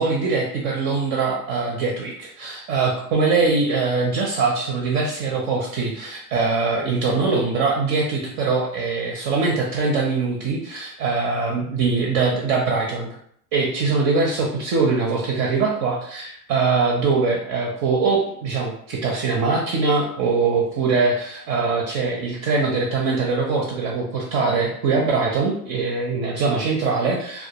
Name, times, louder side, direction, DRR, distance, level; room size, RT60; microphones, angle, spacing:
voice 1, 0.0-13.2 13.5-27.5, right 4 dB, 35° right, -1 dB, 0.4 m, -22 dB
2.2 x 2.2 x 2.8 m, 0.66 s
hypercardioid pair, 100°, 45 cm